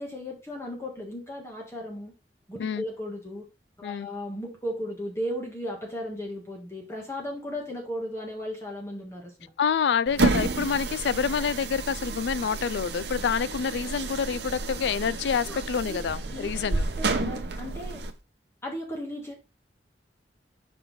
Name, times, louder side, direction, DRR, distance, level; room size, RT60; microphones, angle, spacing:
voice 1, 0.0-2.1 2.5-3.5 3.8-9.5 15.4-15.6 15.9-18.0 18.6-19.4, equal, 15° left, 1.6 m, -36 dB
voice 2, 9.6-16.9, left 6 dB, 75° left, 0.4 m, -27 dB
sound 1, 10.1-18.1, right 3 dB, 70° right, 0.8 m, -30 dB
5.5 x 4.2 x 4.1 m
head